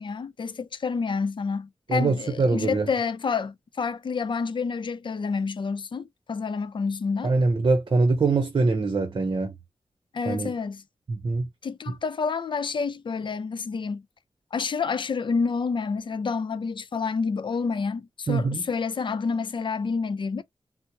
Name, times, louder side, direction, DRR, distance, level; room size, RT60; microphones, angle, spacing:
voice 1, 0.0-7.3 10.1-10.8 11.6-14.0 14.5-20.4, left 5 dB, 60° left, 0.5 m, -29 dB
voice 2, 1.9-2.9 7.2-9.5 10.3-10.5 11.1-11.4 18.3-18.6, right 3 dB, 55° right, 0.8 m, -23 dB
4.4 x 2.0 x 2.8 m
wide cardioid pair, 95°, 9 cm